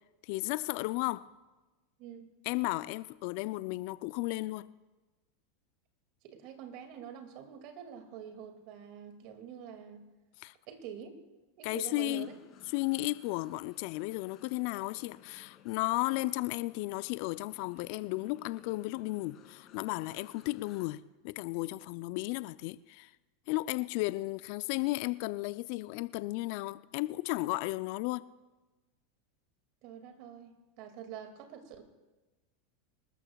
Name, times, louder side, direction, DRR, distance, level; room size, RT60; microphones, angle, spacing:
voice 1, 0.2-1.3 2.5-4.7 10.4-10.5 11.6-12.3 12.7-23.1 23.5-28.3, left 20 dB, 60° left, 0.4 m, -34 dB
voice 2, 6.2-10.1 10.7-11.2 11.6-12.3 29.8-31.8, right 8 dB, 55° right, 2.2 m, -46 dB
sound 1, 12.0-20.9, left 9 dB, 40° left, 2.2 m, -59 dB
25.5 x 13.0 x 2.3 m
hypercardioid pair, 90°, 0 cm